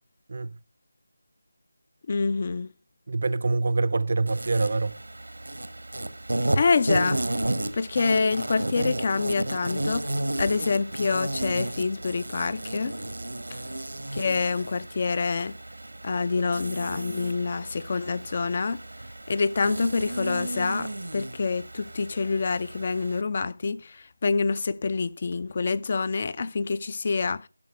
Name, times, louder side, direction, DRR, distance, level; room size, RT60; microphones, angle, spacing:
voice 1, 2.1-2.7 6.6-7.2 7.7-10.1 10.4-12.9 13.5-13.6 14.1-15.5 16.0-18.8 19.3-27.5, left 4 dB, 35° left, 0.4 m, -26 dB
voice 2, 3.1-5.0, right 3 dB, 50° right, 0.5 m, -25 dB
Insect, 4.3-23.2, right 1 dB, 85° right, 1.2 m, -33 dB
11.5 x 5.7 x 5.4 m
figure-of-eight pair, 165°, 0 cm